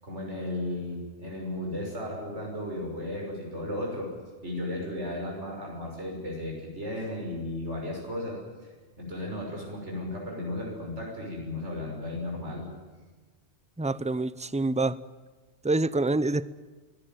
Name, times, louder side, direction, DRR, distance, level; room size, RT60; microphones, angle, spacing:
voice 1, 0.0-4.1 4.4-8.4 9.0-12.7, left 1 dB, 85° right, -1 dB, 6.4 m, -35 dB
voice 2, 13.8-15.0 15.6-16.5, right 2 dB, 10° right, 16 dB, 0.5 m, -26 dB
25.0 x 17.0 x 9.3 m, 1.3 s
omnidirectional pair, 1.2 m